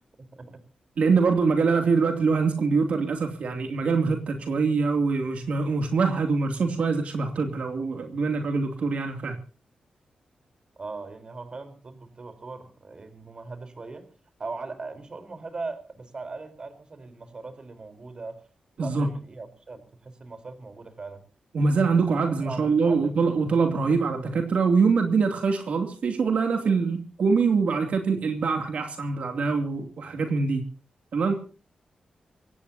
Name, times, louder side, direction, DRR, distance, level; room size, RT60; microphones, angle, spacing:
voice 1, 1.0-9.4 18.8-19.1 21.5-30.6 31.1-31.3, right 4 dB, 65° right, 4 dB, 2.7 m, -24 dB
voice 2, 10.8-14.1 14.4-18.4 18.8-21.2 22.0-22.1 22.4-23.2, right 3 dB, 35° right, 10 dB, 4.1 m, -39 dB
24.5 x 18.5 x 2.8 m, 0.38 s
wide cardioid pair, 130°, 2 cm